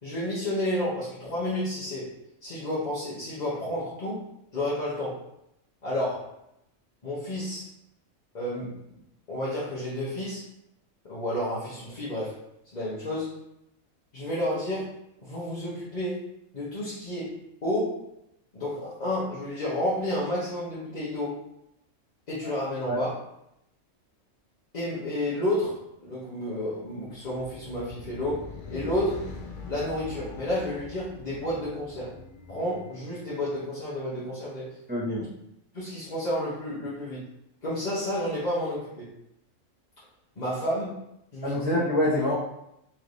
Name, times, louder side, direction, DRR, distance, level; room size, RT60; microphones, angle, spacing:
voice 1, 0.0-2.1 2.4-4.2 4.5-5.2 5.8-6.3 7.0-7.6 8.3-8.8 9.3-10.4 11.0-12.4 12.7-13.4 14.1-14.9 15.2-16.2 16.5-18.0 18.5-21.4 22.3-23.1 24.7-28.4 28.7-29.2 29.7-32.2 32.5-34.8 35.7-37.3 37.6-39.1 40.4-41.0 41.3-41.5, left 1 dB, 35° left, -9 dB, 0.9 m, -31 dB
sound 1, 27.2-33.6, left 3 dB, 65° left, 0.5 m, -43 dB
voice 2, 34.9-35.2 41.4-42.3, left 1 dB, 10° right, -7 dB, 0.6 m, -25 dB
3.3 x 3.1 x 3.9 m, 0.82 s
omnidirectional pair, 1.4 m